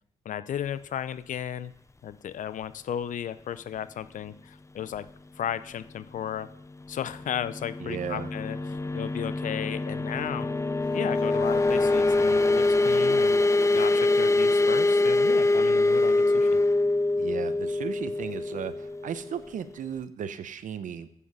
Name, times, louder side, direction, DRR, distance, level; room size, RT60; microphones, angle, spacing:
voice 1, 0.2-1.7 2.0-5.1 5.3-6.5 6.9-8.6 8.9-10.6 10.9-13.4 13.7-16.6, left 9 dB, 70° left, 15 dB, 0.6 m, -34 dB
sound 1, 7.1-19.6, left 2 dB, 20° left, 0.5 m, -24 dB
voice 2, 7.8-8.3 17.2-21.1, right 8 dB, 70° right, 13 dB, 0.8 m, -36 dB
sound 2, 10.5-16.7, equal, 5° right, 2.4 m, -52 dB
10.5 x 8.4 x 5.6 m, 0.71 s
cardioid pair, 60°, 14 cm